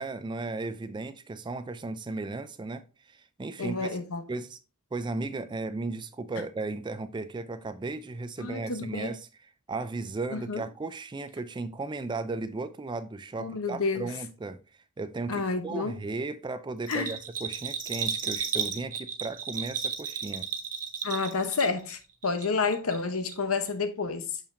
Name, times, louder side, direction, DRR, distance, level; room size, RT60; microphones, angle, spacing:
voice 1, 0.0-4.0 4.3-4.6 4.9-9.2 9.7-14.6 15.0-20.5, right 3 dB, 20° right, 0.3 m, -35 dB
voice 2, 3.6-4.2 8.4-9.2 10.3-10.6 13.4-14.1 15.3-16.0 16.9-17.1 21.0-24.4, left 4 dB, 65° left, 0.9 m, -30 dB
Bell, 16.8-21.9 22.2-23.0 23.3-23.4, right 7 dB, 35° right, 0.8 m, -33 dB
6.7 x 5.7 x 2.6 m
head